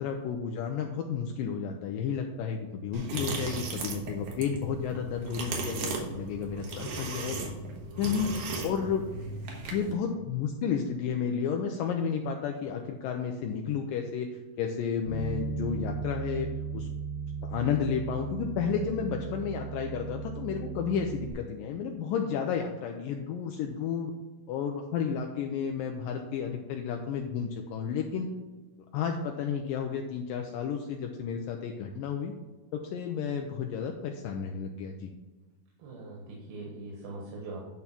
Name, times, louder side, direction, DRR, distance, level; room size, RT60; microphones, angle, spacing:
voice 1, 0.0-7.5 8.0-8.3 8.6-9.0 9.7-16.5 16.7-16.9 17.4-24.1 24.5-28.3 28.9-32.3 32.7-35.1, left 7 dB, 80° left, 3 dB, 2.2 m, -32 dB
sound 1, 2.9-9.9, right 3 dB, 60° right, 2.5 m, -36 dB
Bass guitar, 15.1-21.3, right 5 dB, 45° left, 2.2 m, -36 dB
voice 2, 35.8-37.7, right 2 dB, 85° right, -3 dB, 3.4 m, -41 dB
10.5 x 4.1 x 5.8 m, 1.2 s
omnidirectional pair, 4.2 m